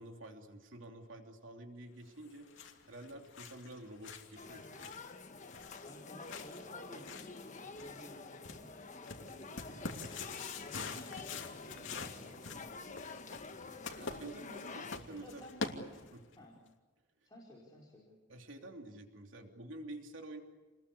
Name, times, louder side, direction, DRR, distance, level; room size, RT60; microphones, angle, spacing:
voice 1, 0.0-4.9 13.9-15.4 16.1-16.2 18.3-20.4, right 1 dB, 85° right, 3 dB, 3.1 m, -49 dB
sound 1, 2.2-16.4, left 4 dB, 80° left, 2.7 m, -47 dB
sound 2, 4.3-15.0, left 4 dB, 40° left, 1.4 m, -49 dB
voice 2, 5.8-7.2 7.8-8.2 8.9-10.1 10.6-12.8 15.0-15.9 16.3-16.6 17.2-18.2, left 1 dB, 20° left, -4 dB, 4.8 m, -55 dB
sound 3, 6.6-13.0, left 1 dB, 35° right, 7.8 m, -60 dB
29.0 x 21.0 x 8.5 m, 1.2 s
head